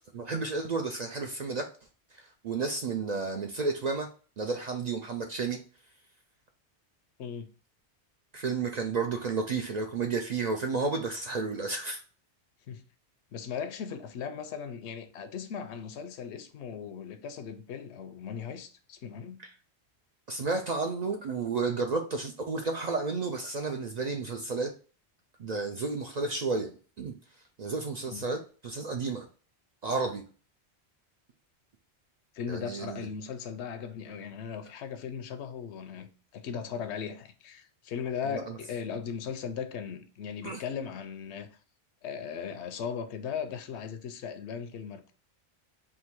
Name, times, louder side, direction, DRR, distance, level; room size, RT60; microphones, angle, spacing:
voice 1, 0.1-1.7 2.1-4.1 4.4-5.6 8.3-12.0 19.4-19.5 20.3-24.7 25.4-26.7 27.0-27.1 27.6-29.3 29.8-30.2 32.5-33.1 38.2-38.6 40.4-40.6, right 4 dB, 55° right, 0.5 m, -32 dB
voice 2, 7.2-7.5 12.7-12.8 13.3-19.4 28.1-28.2 32.3-41.5 42.0-45.1, left 7 dB, 85° left, 0.9 m, -38 dB
3.6 x 2.6 x 4.3 m
omnidirectional pair, 1.1 m